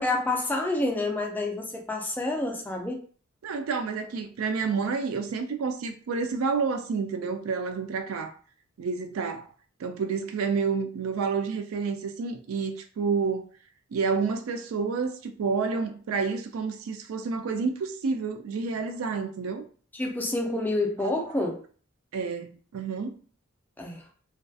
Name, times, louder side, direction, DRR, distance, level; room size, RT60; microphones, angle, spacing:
voice 1, 0.0-3.0 19.9-21.6 23.8-24.0, left 2 dB, 10° left, 0.4 m, -28 dB
voice 2, 3.4-8.3 8.8-9.5 9.8-13.5 13.9-19.6 21.0-21.1 22.1-23.1, right 5 dB, 85° right, 0.4 m, -29 dB
2.6 x 2.3 x 2.3 m
head